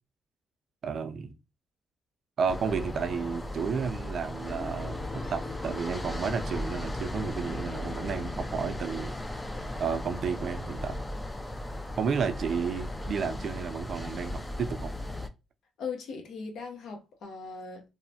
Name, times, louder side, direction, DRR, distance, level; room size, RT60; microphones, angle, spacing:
voice 1, 0.8-1.3 2.4-9.2 9.8-11.0 12.0-14.9, right 6 dB, 55° right, 0.4 m, -32 dB
sound 1, 2.5-15.3, left 1 dB, 15° left, 0.3 m, -36 dB
sound 2, 4.5-7.3, left 3 dB, 30° left, 1.6 m, -46 dB
voice 2, 15.8-17.8, left 5 dB, 70° left, 0.8 m, -39 dB
3.0 x 2.0 x 2.7 m
cardioid pair, 90°, 0 cm